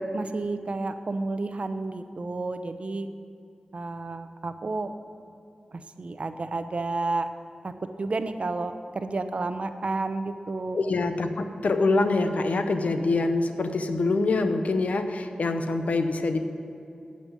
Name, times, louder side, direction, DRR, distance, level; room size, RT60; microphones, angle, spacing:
voice 1, 0.1-3.1 3.7-4.9 5.7-7.3 7.6-10.8, right 3 dB, 55° right, 10 dB, 0.7 m, -31 dB
voice 2, 10.7-16.4, left 3 dB, 75° left, 8 dB, 0.8 m, -25 dB
8.9 x 7.7 x 8.4 m, 2.6 s
cardioid pair, 50°, 2 cm